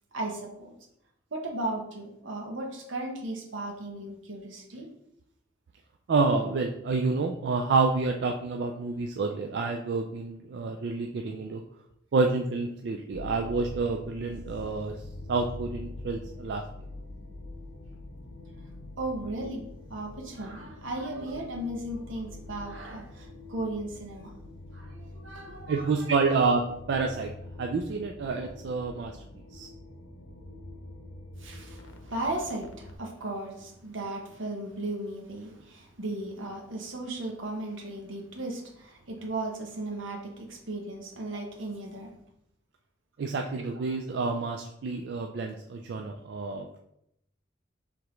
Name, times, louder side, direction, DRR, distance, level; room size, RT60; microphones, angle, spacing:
voice 1, 0.1-0.7 1.3-4.9 19.0-24.3 24.7-26.3 31.4-42.1 43.6-43.7, right 2 dB, 80° right, 2 dB, 0.9 m, -36 dB
voice 2, 6.1-11.6 12.1-15.0 15.3-16.6 25.7-26.6 26.9-27.3 27.6-29.2 29.5-29.7 43.2-46.8, right 4 dB, 60° right, 3 dB, 0.3 m, -28 dB
sound 1, 13.1-33.0, left 2 dB, 85° left, 0.7 m, -45 dB
4.8 x 3.5 x 3.1 m, 0.77 s
head